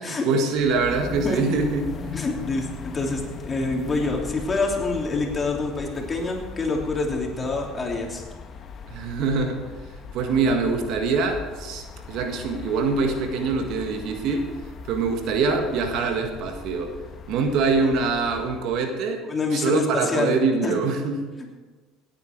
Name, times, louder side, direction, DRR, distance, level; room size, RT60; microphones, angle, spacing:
voice 1, 0.1-2.1 8.9-9.6 10.1-14.5 14.9-16.9 17.3-19.2 19.5-21.3, right 4 dB, 65° right, 5 dB, 1.8 m, -24 dB
sound 1, 0.5-18.8, left 5 dB, 45° left, 1.3 m, -39 dB
voice 2, 2.1-8.2 19.3-20.3 20.6-20.7, left 3 dB, 30° left, 0 dB, 3.1 m, -26 dB
17.0 x 8.9 x 4.7 m, 1.3 s
hypercardioid pair, 70°, 0 cm